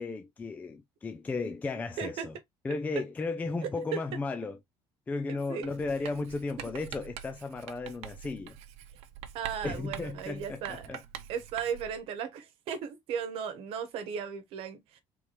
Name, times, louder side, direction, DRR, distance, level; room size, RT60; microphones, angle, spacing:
voice 1, 0.0-2.3 2.6-4.6 5.1-8.6 9.6-11.0, left 3 dB, 15° left, 0.4 m, -35 dB
voice 2, 2.0-2.3 3.9-4.0 5.3-5.8 6.1-6.2 9.3-10.9 11.3-15.0, right 7 dB, 65° right, 1.1 m, -36 dB
Writing, 5.6-12.0, right 10 dB, 80° right, 0.7 m, -45 dB
4.7 x 3.5 x 2.9 m
cardioid pair, 165°, 11 cm